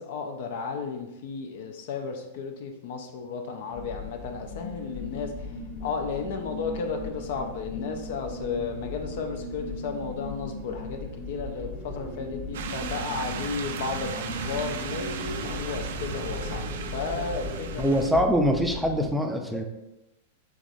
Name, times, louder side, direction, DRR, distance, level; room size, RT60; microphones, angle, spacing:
voice 1, 0.0-5.5 5.8-18.0, left 5 dB, 60° left, 4 dB, 0.5 m, -33 dB
sound 1, 3.7-19.1, left 2 dB, 20° left, 1.0 m, -37 dB
sound 2, 12.5-18.1, right 7 dB, 70° right, 0.4 m, -36 dB
voice 2, 17.8-19.6, equal, ahead, 2 dB, 0.4 m, -24 dB
3.5 x 3.0 x 2.6 m, 0.93 s
hypercardioid pair, 105°, 0 cm